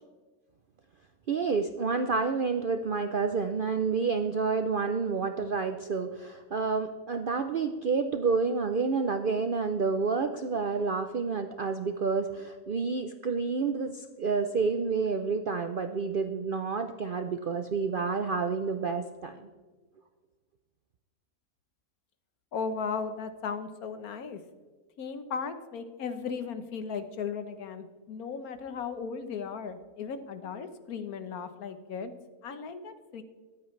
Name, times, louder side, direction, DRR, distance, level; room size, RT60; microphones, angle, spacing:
voice 1, 1.3-19.5, right 4 dB, 60° right, 7 dB, 0.5 m, -29 dB
voice 2, 22.5-24.4 25.0-32.1 32.4-33.2, left 5 dB, 70° left, 10 dB, 1.4 m, -36 dB
23.0 x 8.5 x 3.2 m, 1.4 s
omnidirectional pair, 1.6 m